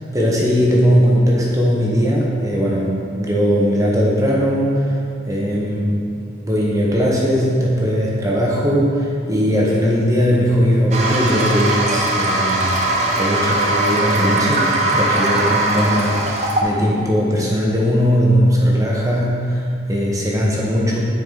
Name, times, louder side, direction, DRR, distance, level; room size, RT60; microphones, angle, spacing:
voice 1, 0.1-4.9 5.2-6.1 6.5-12.7 13.2-21.0, equal, 15° right, -4 dB, 1.0 m, -18 dB
Toilet flush, 10.9-16.6, right 2 dB, 35° right, 0.6 m, -20 dB
9.2 x 4.7 x 3.8 m, 2.5 s
head